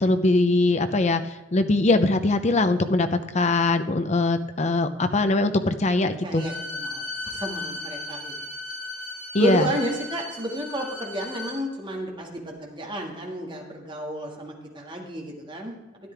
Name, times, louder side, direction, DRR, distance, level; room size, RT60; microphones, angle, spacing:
voice 1, 0.0-1.2 1.5-6.4 9.3-9.7, left 2 dB, 35° left, 9 dB, 0.6 m, -21 dB
voice 2, 6.2-8.3 9.4-16.1, right 1 dB, 25° right, 0 dB, 1.9 m, -31 dB
Bowed string instrument, 6.3-11.6, left 2 dB, ahead, 2.9 m, -36 dB
12.5 x 10.0 x 3.4 m, 1.2 s
head